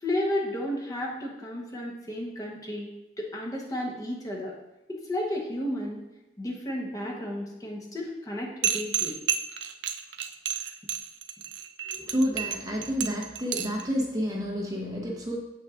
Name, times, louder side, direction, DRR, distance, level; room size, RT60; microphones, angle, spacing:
voice 1, 0.0-2.9 3.2-4.5 4.9-6.0 6.4-9.1, left 1 dB, 20° left, -1 dB, 0.9 m, -32 dB
sound 1, 8.6-13.8, right 8 dB, 85° right, 0.4 m, -30 dB
voice 2, 11.9-15.4, equal, 20° right, -1 dB, 0.8 m, -29 dB
8.0 x 5.8 x 2.4 m, 1.0 s
head